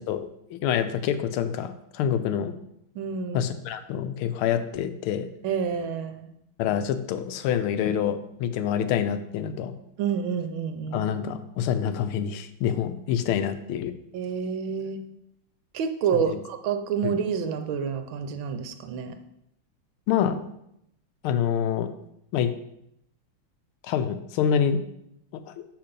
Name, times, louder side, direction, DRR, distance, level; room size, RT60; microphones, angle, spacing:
voice 1, 0.1-2.5 3.3-5.3 6.6-9.7 10.9-13.9 16.1-16.3 17.0-17.2 20.1-20.4 21.2-21.9 22.3-22.5 23.8-24.8 25.5-25.6, left 8 dB, 85° left, 10 dB, 1.5 m, -26 dB
voice 2, 2.9-3.5 5.4-6.3 10.0-11.0 14.1-15.0 15.7-19.2, right 7 dB, 75° right, 8 dB, 1.5 m, -28 dB
6.0 x 5.8 x 5.2 m, 0.78 s
omnidirectional pair, 2.3 m